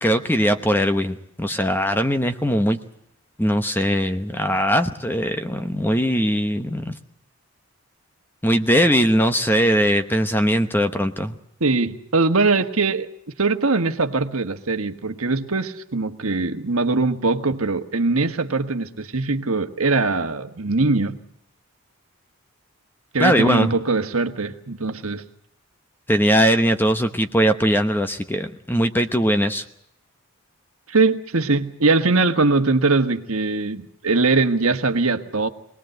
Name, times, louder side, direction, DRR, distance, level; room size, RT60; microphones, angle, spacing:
voice 1, 0.0-2.8 3.4-7.0 8.4-11.3 23.2-23.7 26.1-29.6, equal, 10° left, 8 dB, 0.9 m, -20 dB
voice 2, 11.6-13.1 13.4-21.2 23.1-25.2 30.9-35.5, right 3 dB, 70° right, 8 dB, 1.4 m, -21 dB
24.0 x 19.0 x 7.9 m, 0.74 s
head